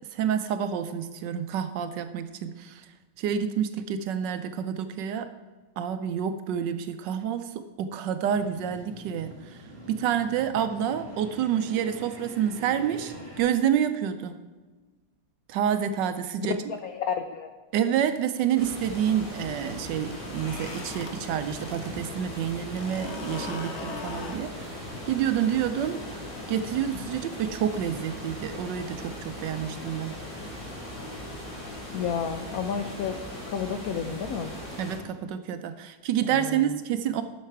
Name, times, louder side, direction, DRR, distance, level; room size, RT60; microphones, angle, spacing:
voice 1, 0.1-2.9 3.2-5.3 5.8-14.4 15.5-16.6 17.7-26.0 26.5-30.2 34.8-37.2, right 9 dB, 75° right, 10 dB, 1.1 m, -28 dB
sound 1, 8.3-13.4, right 1 dB, 15° right, 3.2 m, -45 dB
voice 2, 16.8-17.5 31.9-33.2 33.5-34.5 36.2-36.7, left 7 dB, 80° left, 7 dB, 0.8 m, -31 dB
sound 2, 18.5-35.0, left 1 dB, 60° left, 3.4 m, -39 dB
sound 3, 20.1-21.9 22.2-27.0, left 3 dB, 45° left, 1.0 m, -41 dB
10.5 x 6.6 x 4.5 m, 1.3 s
omnidirectional pair, 2.2 m